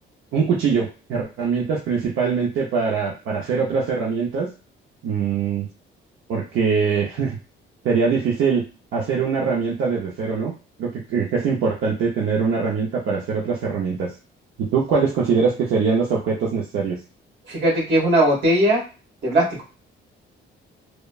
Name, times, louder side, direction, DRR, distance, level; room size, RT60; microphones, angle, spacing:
voice 1, 0.3-4.5 5.0-5.7 6.3-7.4 7.8-8.6 8.9-10.5 10.8-14.1 14.6-17.0, right 5 dB, 75° right, -3 dB, 0.7 m, -22 dB
voice 2, 17.5-18.8 19.2-19.6, right 1 dB, 55° right, -3 dB, 1.5 m, -19 dB
3.1 x 2.1 x 2.3 m, 0.34 s
cardioid pair, 120°, 21 cm